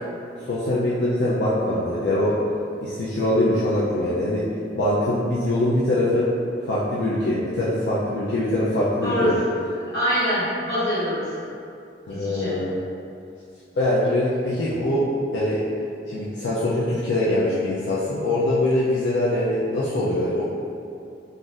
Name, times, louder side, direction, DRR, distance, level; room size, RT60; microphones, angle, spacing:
voice 1, 0.5-2.4 2.8-4.5 4.7-6.3 6.6-9.4 12.1-12.8 13.7-15.1 15.3-15.6 16.1-20.4, left 1 dB, 90° left, -8 dB, 0.4 m, -23 dB
voice 2, 9.0-9.4 9.9-11.4 12.1-12.6, equal, 65° left, -12 dB, 1.4 m, -24 dB
2.6 x 2.4 x 3.9 m, 2.5 s
head